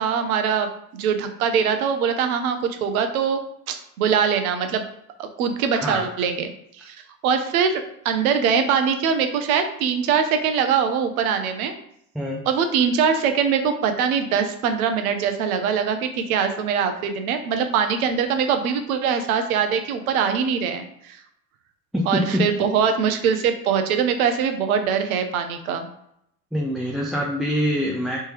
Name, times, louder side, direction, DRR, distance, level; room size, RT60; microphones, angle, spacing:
voice 1, 0.0-3.4 3.7-4.9 5.2-6.5 6.8-7.0 7.2-11.8 12.5-21.2 22.1-25.9, right 7 dB, 75° right, 7 dB, 0.7 m, -22 dB
voice 2, 5.7-6.1 12.1-12.4 21.9-22.5 26.5-28.2, left 1 dB, ahead, -2 dB, 0.3 m, -24 dB
3.4 x 2.8 x 3.1 m, 0.75 s
hypercardioid pair, 75°, 43 cm